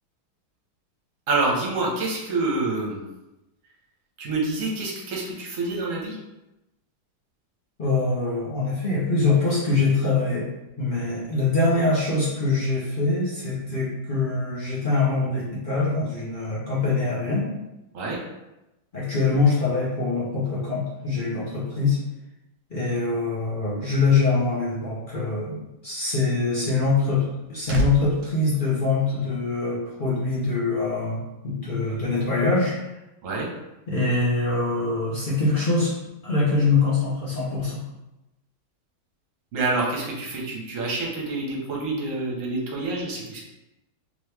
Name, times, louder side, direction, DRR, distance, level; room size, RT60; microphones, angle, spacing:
voice 1, 1.3-3.0 4.2-6.2 17.9-18.2 33.2-33.5 39.5-43.4, right 3 dB, 50° right, -3 dB, 1.1 m, -27 dB
voice 2, 7.8-10.5 10.8-17.5 18.9-22.0 22.7-32.8 33.9-35.9 36.2-37.8, left 3 dB, 45° left, -8 dB, 0.6 m, -24 dB
sound 1, 27.1-29.6 29.9-30.2, right 2 dB, 75° right, 1.2 m, -32 dB
3.6 x 3.1 x 3.3 m, 0.97 s
omnidirectional pair, 2.1 m